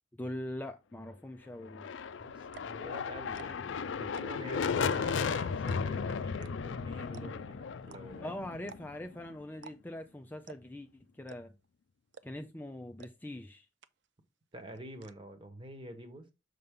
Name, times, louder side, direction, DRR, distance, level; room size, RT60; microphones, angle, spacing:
voice 1, 0.2-1.9 8.2-11.5 12.2-13.7, left 1 dB, 10° left, 0.4 m, -42 dB
sound 1, 1.6-9.4, left 6 dB, 75° left, 0.4 m, -35 dB
sound 2, 2.0-2.1 2.4-2.8 3.3-3.7 4.0-4.5 4.9-5.3 5.7-6.0 6.4-6.5 6.8-6.9 7.1-7.5 7.9-8.0 8.6-9.1 9.5-9.8 10.0-10.1 10.5-10.8 11.3-11.7 12.1-12.5 13.0-13.1 13.4-13.5 13.8-14.2 14.5-15.1, right 6 dB, 65° right, 0.5 m, -51 dB
voice 2, 2.2-8.3 12.3-12.4 14.5-16.3, right 1 dB, 30° right, 1.2 m, -47 dB
6.7 x 5.4 x 3.7 m
head